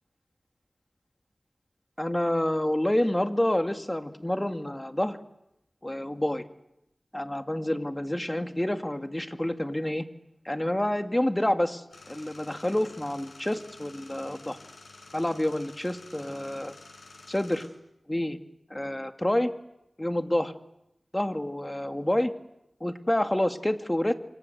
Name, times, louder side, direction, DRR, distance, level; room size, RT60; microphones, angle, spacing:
voice 1, 2.0-5.2 5.8-6.4 7.1-10.1 10.4-14.6 15.1-16.7 17.3-17.7 18.1-18.4 18.7-19.5 20.0-20.5 21.1-22.3 22.8-24.1, left 1 dB, 20° left, 7 dB, 2.2 m, -28 dB
sound 1, 11.9-17.7, left 3 dB, 85° left, 7.2 m, -50 dB
29.0 x 25.5 x 8.0 m, 0.84 s
wide cardioid pair, 45°, 0 cm